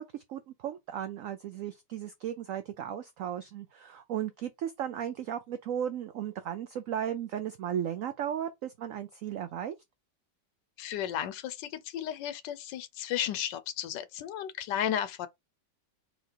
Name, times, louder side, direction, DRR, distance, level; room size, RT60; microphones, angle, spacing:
voice 1, 0.0-9.8, right 9 dB, 85° right, 0.7 m, -35 dB
voice 2, 10.8-15.3, left 10 dB, 80° left, 1.2 m, -34 dB
4.0 x 2.7 x 4.5 m
omnidirectional pair, 1.9 m